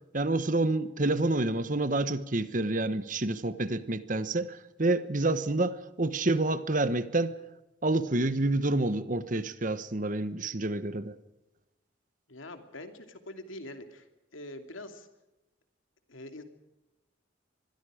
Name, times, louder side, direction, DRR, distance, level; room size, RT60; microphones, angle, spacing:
voice 1, 0.1-7.4 7.8-11.2, right 2 dB, 40° right, 13 dB, 1.1 m, -28 dB
voice 2, 12.3-14.0 14.3-15.1 16.1-16.4, left 1 dB, 90° left, 6 dB, 2.8 m, -44 dB
25.5 x 21.5 x 5.0 m, 0.98 s
head